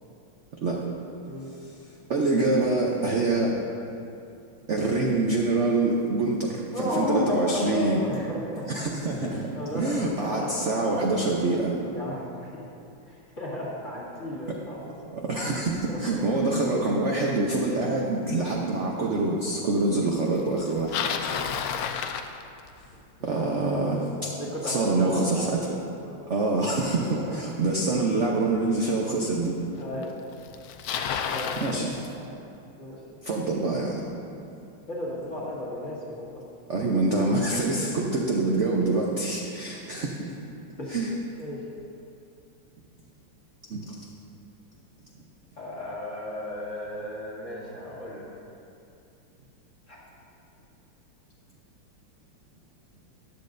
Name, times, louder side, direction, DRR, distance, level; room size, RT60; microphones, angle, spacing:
voice 1, 2.1-3.6 4.7-8.0 8.7-11.8 15.1-21.0 23.2-24.3 24.6-25.7 26.3-29.6 31.6-31.9 33.2-34.0 36.7-40.4 40.9-41.1 43.7-43.9, right 2 dB, 55° right, -2 dB, 0.8 m, -25 dB
voice 2, 6.7-8.7 9.5-11.0 11.9-12.6 13.1-15.0 15.4-15.6 15.9-16.3 24.2-25.5 25.9-26.3 27.1-27.4 29.7-30.3 31.3-31.8 32.1-32.3 32.8-33.0 34.9-36.4 40.8-41.1 41.4-41.6 45.6-48.2 49.9-50.0, left 1 dB, 40° left, -7 dB, 2.4 m, -34 dB
Bicycle, 20.6-22.9 28.0-28.1 28.9-29.0 30.0-30.1 30.3-31.8, left 7 dB, 80° left, 0.8 m, -30 dB
14.0 x 10.5 x 2.6 m, 2.6 s
omnidirectional pair, 2.2 m